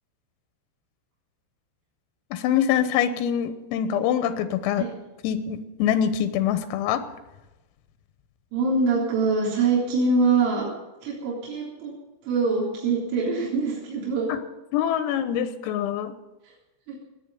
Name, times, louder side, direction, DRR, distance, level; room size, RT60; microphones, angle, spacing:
voice 1, 2.3-4.9 5.2-7.0 14.3-14.4 14.7-16.1, left 9 dB, 90° left, 10 dB, 3.6 m, -24 dB
voice 2, 8.5-10.7 11.0-11.9 12.2-14.4 16.4-16.5 16.9-17.0, right 4 dB, 70° right, -5 dB, 6.1 m, -24 dB
18.5 x 9.9 x 6.9 m, 1.0 s
omnidirectional pair, 6.0 m